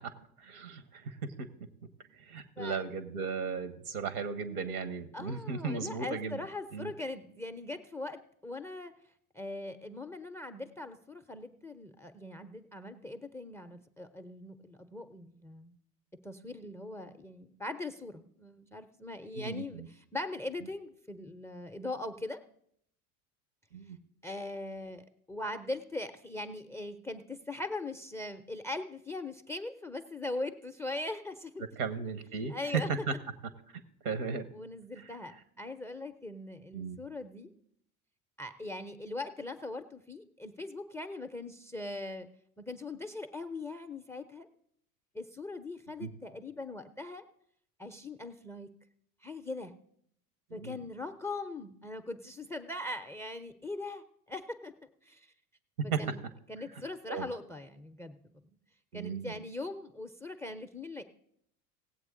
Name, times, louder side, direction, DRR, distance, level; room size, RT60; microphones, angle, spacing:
voice 1, 0.4-1.5 2.3-6.4 6.7-6.9 19.4-19.9 23.7-24.0 31.8-32.5 33.1-33.2 34.0-34.5 36.7-37.0 46.0-46.1 50.5-50.8 55.9-56.0 57.1-57.3 58.9-59.4, right 5 dB, 75° right, 12 dB, 1.2 m, -36 dB
voice 2, 2.6-2.9 5.1-8.9 9.3-15.8 16.2-22.4 24.2-31.6 32.5-33.2 34.3-37.5 38.4-42.3 42.6-44.5 45.1-47.2 47.8-48.7 49.2-49.7 50.5-54.7 55.1-55.3 55.8-56.2 56.5-58.2 58.9-61.0, left 2 dB, 5° left, 12 dB, 0.4 m, -40 dB
17.5 x 7.9 x 3.7 m, 0.69 s
hypercardioid pair, 75°, 44 cm